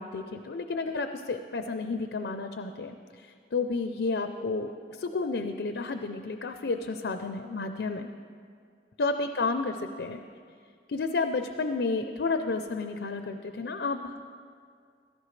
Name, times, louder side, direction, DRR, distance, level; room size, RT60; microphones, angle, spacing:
voice 1, 0.0-8.1 9.0-10.2 10.9-14.2, left 3 dB, 80° left, 7 dB, 0.5 m, -31 dB
16.5 x 14.0 x 3.2 m, 2.2 s
head